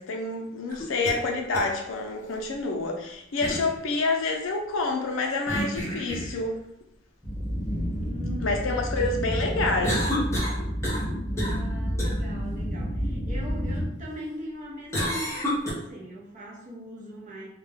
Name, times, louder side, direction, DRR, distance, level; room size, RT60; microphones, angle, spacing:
voice 1, 0.0-6.6 8.4-10.0, left 3 dB, 80° left, 2 dB, 0.5 m, -28 dB
sound 1, 0.7-1.2 1.5-1.6 3.4-3.7 5.5-6.4 9.8-11.1 11.4-11.6 12.0-12.1 14.9-15.7, equal, 15° left, 0.7 m, -29 dB
sound 2, 7.2-13.9, equal, ahead, 1.1 m, -29 dB
voice 2, 8.0-8.9 11.3-17.5, equal, 40° right, -4 dB, 0.7 m, -41 dB
2.3 x 2.1 x 3.3 m, 0.78 s
head